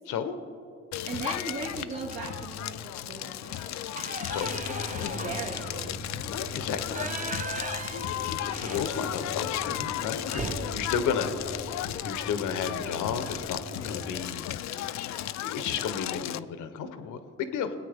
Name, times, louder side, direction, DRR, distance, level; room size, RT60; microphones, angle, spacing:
voice 1, 0.1-0.4 4.3-4.6 6.3-7.1 7.3-7.6 8.1-15.0 15.4-17.7, left 7 dB, 85° left, 9 dB, 0.9 m, -33 dB
Crackle, 0.9-16.4, left 12 dB, 65° left, 0.4 m, -35 dB
voice 2, 1.1-3.3 3.8-3.9 5.1-5.9, right 3 dB, 70° right, -6 dB, 2.0 m, -37 dB
sound 1, 2.1-2.5 2.9-3.0 3.4-9.4 9.7-9.8 10.2-12.4 13.7-14.0 14.4-14.5 14.8-15.5, right 3 dB, 25° right, 0.8 m, -39 dB
sound 2, 4.3-14.3, right 1 dB, 55° right, 2.5 m, -43 dB
20.0 x 8.6 x 3.4 m, 2.5 s
cardioid pair, 90°, 30 cm